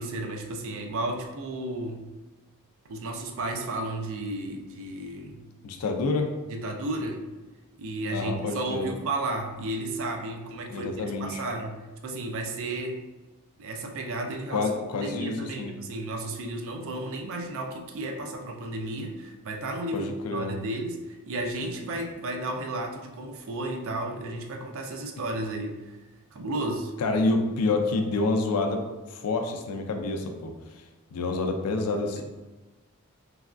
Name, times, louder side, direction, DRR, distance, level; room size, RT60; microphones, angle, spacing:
voice 1, 0.0-2.0 2.9-5.5 6.5-7.2 7.8-13.1 13.6-25.9 26.3-26.9 32.2-32.3, right 2 dB, 60° right, 3 dB, 0.4 m, -33 dB
voice 2, 5.6-6.3 8.1-8.9 10.7-11.4 14.5-15.8 19.9-20.5 27.0-30.5 31.1-32.2, left 3 dB, 80° left, 4 dB, 0.4 m, -28 dB
3.2 x 2.3 x 2.4 m, 1.1 s
head